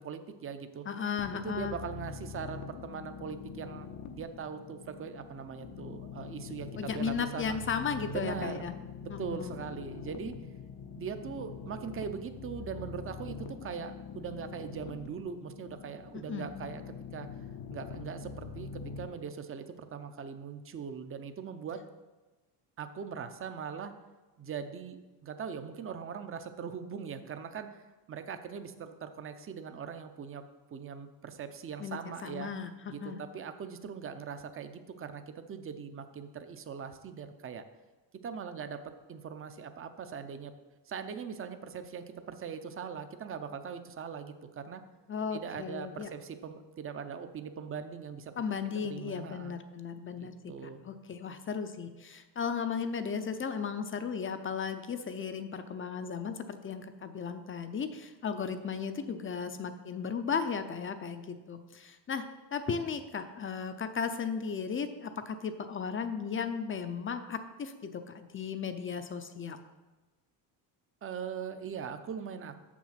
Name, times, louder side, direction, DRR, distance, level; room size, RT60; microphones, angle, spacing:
voice 1, 0.0-0.8 1.4-7.6 8.1-8.6 9.0-10.3 11.0-17.3 17.7-21.8 22.8-23.9 24.4-27.8 28.1-30.4 30.7-32.5 32.9-37.6 38.2-40.5 40.9-44.8 45.3-48.3 48.9-49.6 50.1-50.8 71.0-72.6, right 6 dB, 30° right, 9 dB, 0.6 m, -41 dB
voice 2, 0.9-1.8 6.8-8.7 9.1-9.5 16.1-16.5 31.8-32.7 33.0-33.2 45.1-46.1 48.4-69.6, left 6 dB, 30° left, 9 dB, 0.5 m, -35 dB
sound 1, 1.2-19.1, left 6 dB, 80° left, 0.9 m, -44 dB
6.9 x 6.1 x 5.7 m, 1.2 s
cardioid pair, 120°, 45 cm